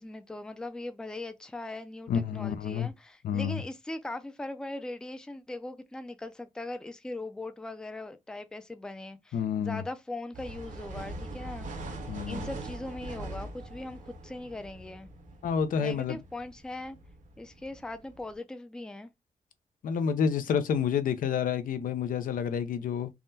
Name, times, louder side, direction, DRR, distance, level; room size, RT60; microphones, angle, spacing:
voice 1, 0.0-11.7 12.3-15.1 15.8-17.0 17.4-19.1, left 2 dB, 5° left, 0.3 m, -40 dB
voice 2, 2.1-2.9 3.2-3.6 9.3-9.8 12.1-12.5 15.4-16.2 19.8-23.1, left 7 dB, 85° left, 0.5 m, -29 dB
sound 1, 10.3-18.3, right 2 dB, 70° right, 0.7 m, -42 dB
3.5 x 2.1 x 2.6 m
wide cardioid pair, 145°, 14 cm